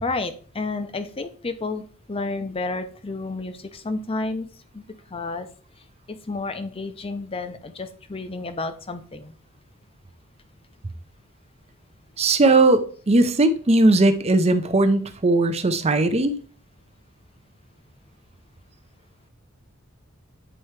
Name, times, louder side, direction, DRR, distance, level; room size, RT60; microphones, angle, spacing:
voice 1, 0.0-4.5 4.7-4.8 5.1-5.5 6.1-9.3, left 3 dB, 25° left, 9 dB, 0.6 m, -31 dB
voice 2, 12.2-16.3, right 2 dB, 30° right, 10 dB, 0.6 m, -18 dB
8.8 x 4.5 x 3.2 m, 0.43 s
head